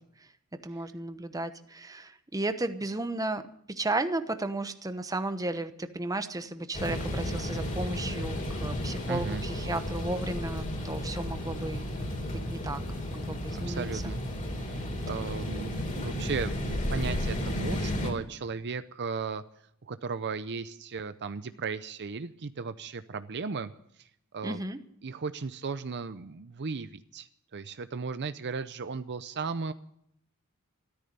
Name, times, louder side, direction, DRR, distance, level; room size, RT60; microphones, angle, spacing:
voice 1, 0.6-11.9 12.3-12.8 13.1-14.0 24.4-24.8, right 2 dB, 15° right, 10 dB, 1.0 m, -34 dB
sound 1, 6.7-18.1, left 1 dB, 35° left, 3.5 m, -33 dB
voice 2, 9.1-9.4 13.5-14.2 14.6-19.4 19.8-24.6 25.0-29.7, right 4 dB, 50° right, 12 dB, 0.6 m, -36 dB
13.5 x 13.5 x 6.8 m, 0.70 s
head